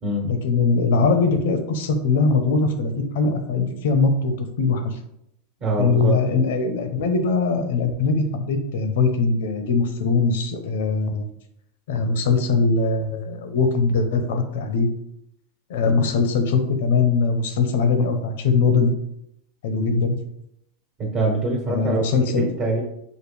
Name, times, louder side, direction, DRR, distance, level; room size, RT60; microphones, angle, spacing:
voice 1, 0.2-5.0 5.8-11.3 11.9-14.9 15.7-18.9 19.6-20.2 21.7-22.5, left 4 dB, 75° left, 7 dB, 0.7 m, -21 dB
voice 2, 5.6-6.2 21.0-22.8, right 2 dB, 45° right, -1 dB, 1.2 m, -24 dB
5.0 x 2.2 x 3.4 m, 0.78 s
supercardioid pair, 130°, 0 cm